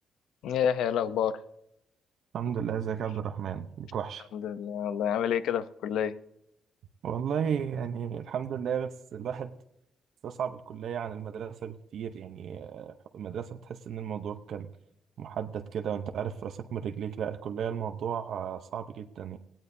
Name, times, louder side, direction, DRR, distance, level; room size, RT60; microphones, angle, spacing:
voice 1, 0.4-1.4 4.3-6.1, left 9 dB, 85° left, 13 dB, 0.7 m, -28 dB
voice 2, 2.3-4.3 7.0-9.5 10.2-14.7 15.2-19.4, right 8 dB, 65° right, 7 dB, 0.8 m, -34 dB
18.0 x 17.0 x 2.7 m, 0.80 s
cardioid pair, 125°, 0 cm